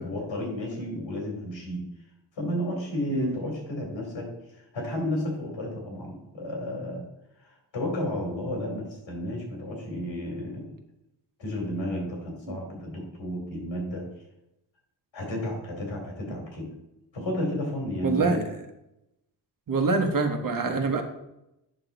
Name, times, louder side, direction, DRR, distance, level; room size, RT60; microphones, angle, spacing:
voice 1, 0.0-1.9 2.4-4.3 4.7-7.0 7.4-10.7 11.4-14.1 15.1-16.8 17.1-18.4, left 1 dB, 90° left, 0 dB, 3.2 m, -32 dB
voice 2, 18.0-18.6 19.7-21.0, right 4 dB, 50° right, 5 dB, 1.1 m, -26 dB
8.7 x 6.1 x 3.9 m, 0.88 s
wide cardioid pair, 130°, 44 cm